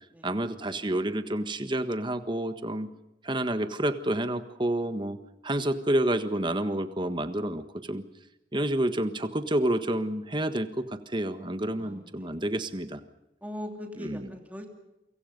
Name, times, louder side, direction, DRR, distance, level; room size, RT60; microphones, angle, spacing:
voice 1, 0.2-2.9 3.2-5.2 5.4-8.0 8.5-13.0 14.0-14.3, right 1 dB, 25° right, 10 dB, 1.5 m, -29 dB
voice 2, 11.8-12.4 13.4-14.7, equal, 10° right, 3 dB, 3.0 m, -40 dB
28.5 x 25.0 x 5.3 m, 0.92 s
head